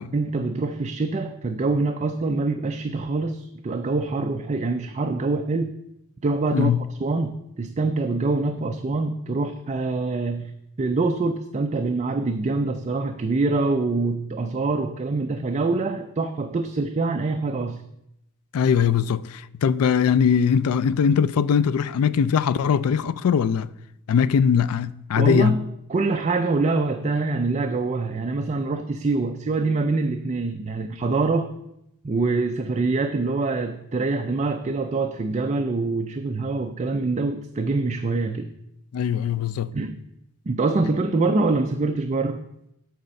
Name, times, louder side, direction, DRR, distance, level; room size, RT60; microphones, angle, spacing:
voice 1, 0.1-5.7 6.2-6.7 7.0-10.5 10.8-17.8 25.2-25.6 25.9-31.5 32.0-38.5 39.7-40.0 40.5-42.4, right 3 dB, 30° right, 0.4 m, -25 dB
voice 2, 18.5-23.7 24.1-25.6 38.9-39.7, left 7 dB, 70° left, 0.3 m, -21 dB
7.9 x 4.2 x 6.4 m
head